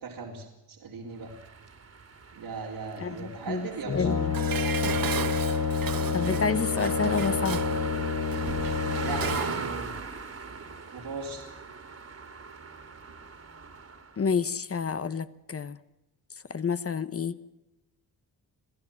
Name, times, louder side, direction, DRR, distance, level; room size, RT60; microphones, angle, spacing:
voice 1, 0.0-1.3 2.3-4.1 8.9-10.0 10.9-11.4, right 4 dB, 85° right, -3 dB, 4.4 m, -38 dB
sound 1, 1.2-14.2, right 4 dB, 40° right, 2.6 m, -39 dB
voice 2, 3.0-3.7 3.9-4.3 6.1-7.7 14.2-15.8 16.5-17.4, left 5 dB, 35° left, 14 dB, 1.0 m, -29 dB
Brass instrument, 3.9-9.6, left 5 dB, 55° left, 3.0 m, -28 dB
Dishes pots and pans, 4.3-9.6 10.0-10.1, right 8 dB, 60° right, 1.3 m, -36 dB
26.5 x 16.0 x 7.6 m, 0.96 s
wide cardioid pair, 130°, 38 cm